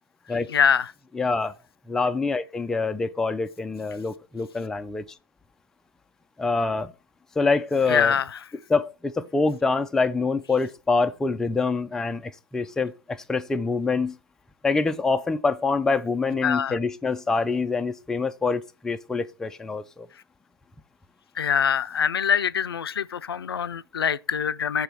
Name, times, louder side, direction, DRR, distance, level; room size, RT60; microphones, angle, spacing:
voice 1, 0.5-0.9 7.9-8.4 16.4-16.8 21.4-24.8, left 7 dB, 85° left, 0.4 m, -24 dB
voice 2, 1.1-1.5 1.9-5.0 6.4-6.9 7.4-8.1 8.7-14.2 14.6-20.1, left 4 dB, 5° left, 0.3 m, -25 dB
6.0 x 3.4 x 5.5 m
hypercardioid pair, 120°, 12 cm